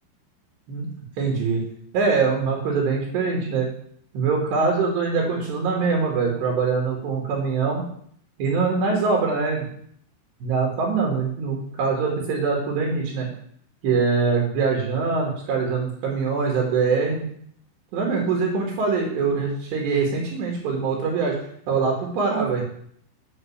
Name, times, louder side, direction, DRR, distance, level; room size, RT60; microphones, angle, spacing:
voice 1, 1.2-1.6 1.9-3.7 4.1-7.8 8.4-9.6 10.4-13.3 13.8-17.3 17.9-21.4 21.7-22.6, right 4 dB, 70° right, -1 dB, 3.9 m, -23 dB
9.3 x 6.1 x 7.1 m, 0.64 s
omnidirectional pair, 5.4 m